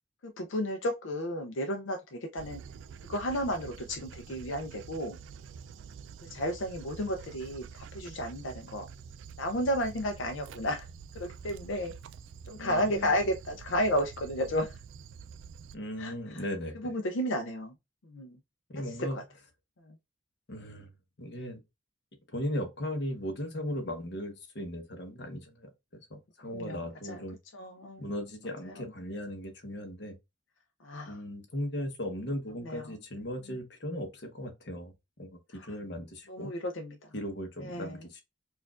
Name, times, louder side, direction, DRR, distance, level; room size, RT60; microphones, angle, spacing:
voice 1, 0.2-2.6 3.1-5.2 6.2-8.9 9.4-10.8 11.1-11.9 12.5-14.7 16.0-16.4 16.8-17.7 18.0-18.4 19.1-19.2 26.5-26.8 27.1-27.2 27.5-28.1 28.7-28.9 30.8-31.2 32.6-32.9 33.5-33.6 36.3-37.0 37.6-38.0, equal, 85° left, 0.5 m, -32 dB
Dog, 2.4-15.7, right 6 dB, 80° right, 0.3 m, -47 dB
voice 2, 12.6-13.2 15.7-16.9 18.7-19.2 20.5-21.6 22.3-27.4 28.0-30.2 31.1-36.5 37.1-38.2, equal, 60° left, 1.0 m, -37 dB
4.4 x 2.4 x 2.3 m
head